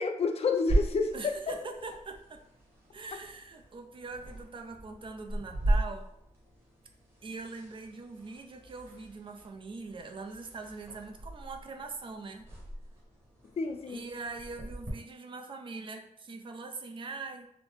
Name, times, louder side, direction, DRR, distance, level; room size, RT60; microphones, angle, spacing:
voice 1, 0.0-1.6 13.6-14.1, left 4 dB, 50° left, 6 dB, 0.4 m, -30 dB
sound 1, 0.7-14.9, right 1 dB, 20° right, 1.1 m, -37 dB
voice 2, 1.1-2.4 2.9-6.1 7.2-12.5 13.9-17.5, right 3 dB, 40° right, 4 dB, 0.4 m, -42 dB
4.0 x 2.0 x 3.1 m, 0.77 s
wide cardioid pair, 150°, 14 cm